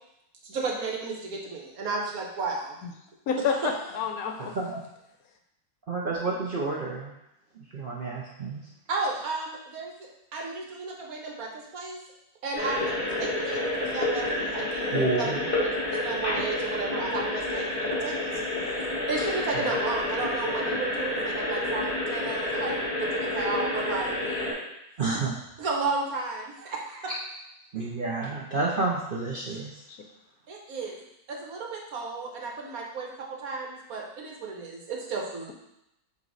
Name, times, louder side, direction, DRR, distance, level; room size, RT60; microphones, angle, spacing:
voice 1, 0.4-2.8 3.5-3.7 8.9-9.9 10.3-12.0 12.4-15.1 15.6-18.3 19.1-22.7 23.0-24.6 25.6-27.1 30.5-30.9 31.3-33.1 33.4-35.5, right 3 dB, 70° right, -1 dB, 1.4 m, -33 dB
voice 2, 3.3-4.6 29.9-30.0, left 6 dB, 70° left, 4 dB, 1.1 m, -29 dB
voice 3, 4.4-4.8 5.9-7.1 7.7-8.6 14.9-15.5 19.5-19.7 25.0-25.3 27.7-29.8, right 3 dB, 50° right, -3 dB, 0.7 m, -30 dB
sound 1, 12.5-24.5, left 1 dB, 35° left, 1.8 m, -29 dB
7.6 x 3.1 x 4.0 m, 0.84 s
omnidirectional pair, 1.6 m